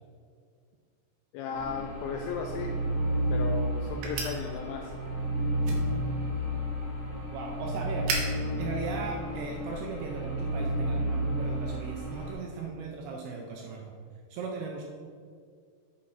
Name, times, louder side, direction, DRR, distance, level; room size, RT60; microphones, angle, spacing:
voice 1, 1.3-2.7 3.3-4.9, left 5 dB, 85° left, 3 dB, 2.3 m, -35 dB
sound 1, 1.5-12.3, right 1 dB, 40° right, 2.2 m, -31 dB
sound 2, 2.6-9.8, right 3 dB, 65° right, 2.5 m, -40 dB
voice 2, 7.3-13.9 14.3-14.8, right 4 dB, 85° right, 1 dB, 2.4 m, -37 dB
8.6 x 6.4 x 4.0 m, 2.1 s
omnidirectional pair, 5.2 m